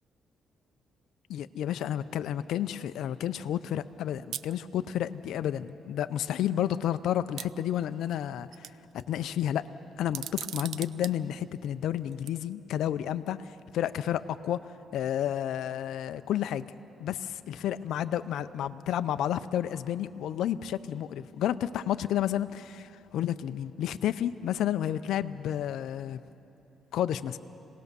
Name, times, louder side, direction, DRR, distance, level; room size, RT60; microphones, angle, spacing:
voice 1, 1.3-9.7 10.0-14.6 14.9-16.7 17.0-26.2 26.9-27.4, left 11 dB, 80° left, 11 dB, 0.5 m, -31 dB
sound 1, 4.3-4.5 5.7-5.8 6.2-6.3 7.4-8.2 8.5-9.0 10.0-11.1 12.1-12.3, right 10 dB, 70° right, 0.5 m, -38 dB
26.0 x 18.0 x 6.8 m, 2.8 s
cardioid pair, 90°, 0 cm